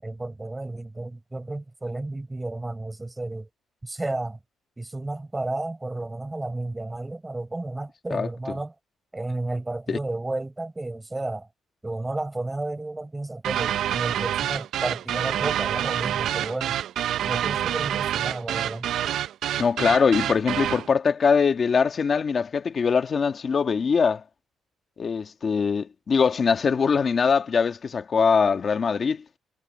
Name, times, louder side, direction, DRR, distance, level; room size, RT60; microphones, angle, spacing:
voice 1, 0.0-3.5 3.8-4.4 4.8-8.7 9.1-11.5 11.8-16.8 17.2-18.9, right 2 dB, 10° right, 6.9 m, -32 dB
sound 1, 13.4-20.9, right 11 dB, 65° right, 0.5 m, -27 dB
voice 2, 19.6-24.2 25.0-29.2, left 5 dB, 35° left, 1.8 m, -22 dB
cardioid pair, 155°, 0 cm